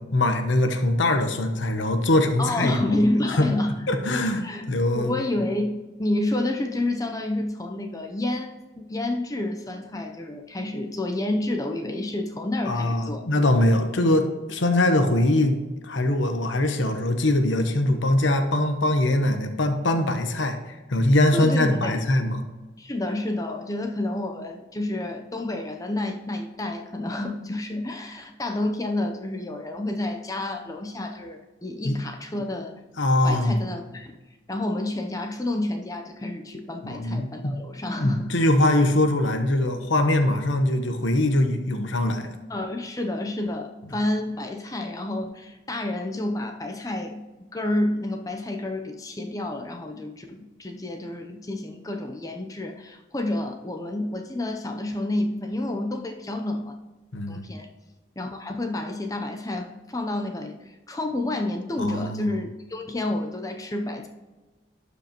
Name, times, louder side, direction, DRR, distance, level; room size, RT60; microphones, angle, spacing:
voice 1, 0.1-3.0 3.4-3.5 3.9-5.1 12.7-15.6 15.8-22.4 31.8-32.0 33.0-33.6 36.8-37.5 38.0-42.4 57.1-57.5 61.8-62.2, left 1 dB, 85° left, 6 dB, 0.9 m, -22 dB
voice 2, 2.4-3.9 4.4-13.2 21.3-22.0 22.8-32.7 33.2-34.1 34.5-38.3 42.5-47.2 47.5-56.8 57.3-57.7 58.2-64.1, left 1 dB, 20° left, 4 dB, 0.6 m, -29 dB
12.0 x 5.1 x 2.9 m, 1.2 s
head